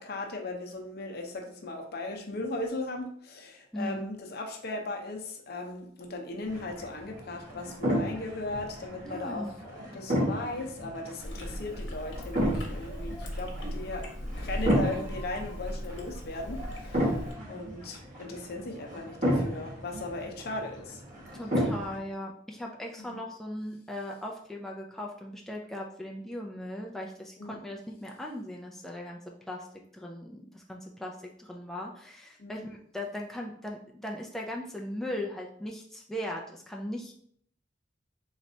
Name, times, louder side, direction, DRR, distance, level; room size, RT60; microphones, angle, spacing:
voice 1, 0.0-17.2 17.5-21.0 23.0-23.2 27.4-27.6 32.4-32.6, left 2 dB, 60° left, 3 dB, 0.7 m, -37 dB
voice 2, 3.7-4.0 9.0-9.5 21.3-29.2 29.5-29.7 29.9-37.1, left 1 dB, ahead, -1 dB, 0.3 m, -38 dB
sound 1, 6.4-22.0, equal, 45° right, 1.4 m, -33 dB
Chewing mastication, 11.2-17.3, equal, 80° left, 1.0 m, -38 dB
4.0 x 3.2 x 2.7 m, 0.64 s
head